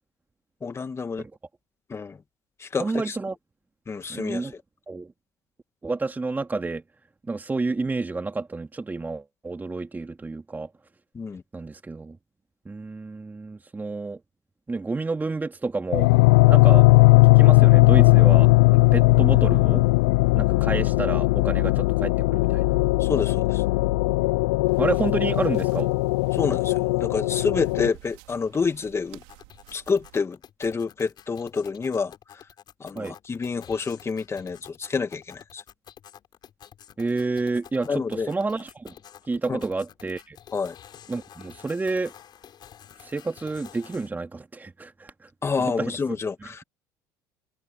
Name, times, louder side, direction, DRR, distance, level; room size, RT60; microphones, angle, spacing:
voice 1, 0.6-1.2 1.9-2.2 2.6-3.2 3.9-4.5 11.1-11.4 23.0-23.6 26.3-29.2 29.7-32.1 32.8-35.6 37.9-38.3 39.5-39.6 40.5-40.8 45.4-46.6, left 5 dB, 25° left, 2.3 m, -28 dB
voice 2, 2.8-3.4 4.1-4.5 4.9-5.1 5.8-6.8 7.2-10.7 11.5-12.2 12.7-14.2 14.7-16.1 16.5-16.9 17.3-19.8 20.3-22.8 24.8-25.9 32.9-33.1 37.0-38.9 39.3-40.4 41.1-42.1 43.0-45.3 45.6-46.0, right 3 dB, 20° right, 2.7 m, -29 dB
sound 1, 15.9-27.9, left 24 dB, 75° left, 0.5 m, -18 dB
sound 2, 24.7-30.2, right 28 dB, 70° right, 4.9 m, -51 dB
sound 3, 29.2-44.1, left 10 dB, 50° left, 6.1 m, -49 dB
hypercardioid pair, 70°, 10 cm